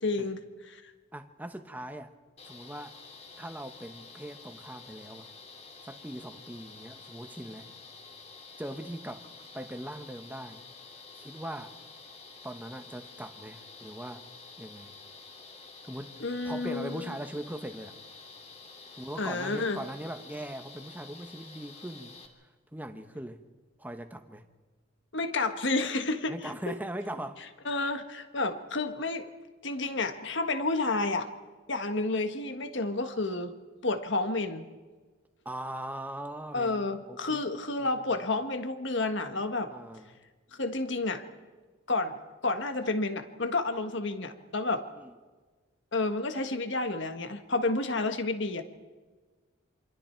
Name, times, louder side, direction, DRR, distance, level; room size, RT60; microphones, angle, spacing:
voice 1, 0.0-0.4 0.7-0.8 16.2-17.1 19.2-19.8 25.1-26.3 26.7-26.8 27.6-29.3 29.6-31.3 31.7-33.5 33.8-34.7 36.5-39.7 40.5-41.2 41.9-44.8 45.9-48.6, left 2 dB, 60° left, 1.6 m, -30 dB
voice 2, 1.1-2.1 2.4-2.9 3.4-5.3 5.9-7.7 8.6-9.2 9.5-10.6 11.1-11.7 12.4-14.3 14.6-14.9 15.8-18.0 19.0-22.2 22.7-23.4 23.8-24.4 26.3-27.5 35.4-37.4 37.8-38.3 39.7-40.2 45.0-45.1, right 1 dB, 10° right, 1.1 m, -40 dB
sound 1, 2.4-22.3, left 4 dB, 30° left, 2.7 m, -49 dB
28.0 x 25.5 x 4.6 m
head